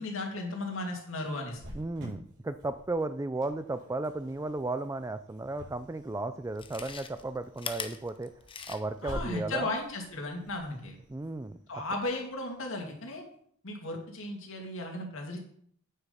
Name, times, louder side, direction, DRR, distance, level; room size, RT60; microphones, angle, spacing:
voice 1, 0.0-1.6 9.0-11.0 11.7-13.2 13.6-15.4, left 2 dB, 65° left, 2 dB, 2.5 m, -35 dB
Cricket, 1.5-12.9, equal, 60° right, 4.1 m, -50 dB
voice 2, 1.7-8.3 8.7-9.7 11.1-11.6, right 2 dB, 15° right, 12 dB, 0.3 m, -34 dB
Chewing mastication, 5.7-5.8 6.5-9.1 9.5-9.6, left 6 dB, 25° left, 0.8 m, -41 dB
9.0 x 7.7 x 5.5 m, 0.64 s
head